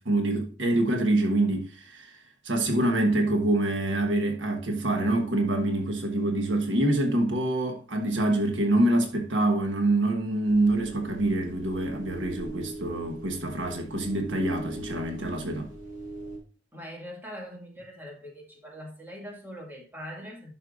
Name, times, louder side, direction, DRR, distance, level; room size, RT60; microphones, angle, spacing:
voice 1, 0.0-2.1 2.4-15.7, right 1 dB, 75° right, 1.3 m, -26 dB
sound 1, 10.4-16.4, right 2 dB, 45° right, 3.6 m, -41 dB
voice 2, 16.7-20.5, equal, 10° right, 2.2 m, -42 dB
11.5 x 5.4 x 2.5 m
head